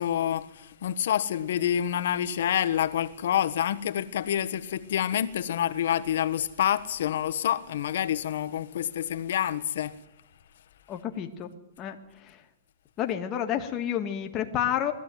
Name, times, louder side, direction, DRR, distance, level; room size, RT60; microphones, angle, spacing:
voice 1, 0.0-10.0, left 10 dB, 70° left, 1.4 m, -27 dB
voice 2, 10.9-11.5 11.8-12.0 12.3-12.4 13.0-14.9, left 10 dB, 25° left, 1.9 m, -29 dB
21.0 x 14.5 x 9.3 m
hypercardioid pair, 160°, 0 cm